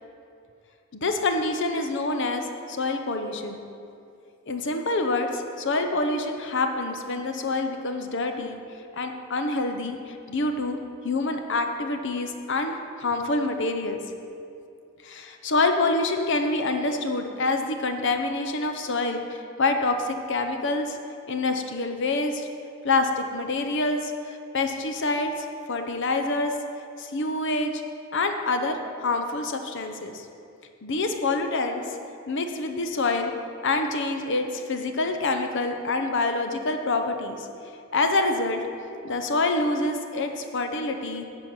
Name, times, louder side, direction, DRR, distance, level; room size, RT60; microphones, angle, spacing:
voice 1, 0.9-3.6 4.5-8.6 9.0-10.8 11.0-14.0 15.0-21.0 21.3-22.5 22.8-24.1 24.5-26.5 27.0-27.8 28.1-30.3 30.8-31.8 32.3-33.3 33.6-37.5 37.9-38.6 39.0-41.3, left 2 dB, 55° left, 6 dB, 0.8 m, -26 dB
11.5 x 4.4 x 7.4 m, 2.5 s
head